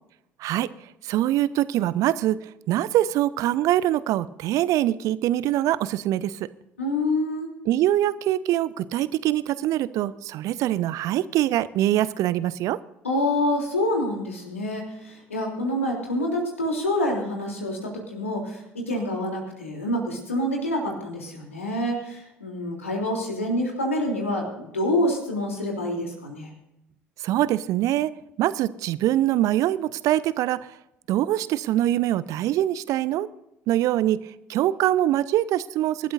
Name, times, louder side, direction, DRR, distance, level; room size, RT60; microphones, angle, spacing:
voice 1, 1.0-2.4 2.7-6.5 7.7-12.8 27.2-28.1 28.4-30.7 31.1-33.3 33.7-34.2 34.5-36.1, right 13 dB, 50° right, 18 dB, 0.6 m, -23 dB
voice 2, 6.8-7.5 13.0-26.5, left 1 dB, 80° left, 0 dB, 3.2 m, -27 dB
26.0 x 12.5 x 2.6 m, 0.86 s
figure-of-eight pair, 55°, 7 cm